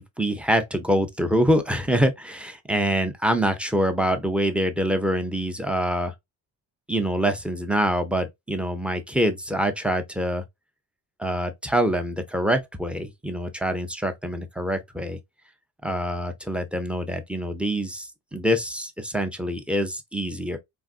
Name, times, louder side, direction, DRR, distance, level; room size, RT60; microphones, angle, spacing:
voice 1, 0.0-6.1 6.9-10.4 11.2-15.2 15.8-20.6, equal, 5° right, 0.4 m, -25 dB
3.5 x 2.4 x 2.3 m
cardioid pair, 105°, 46 cm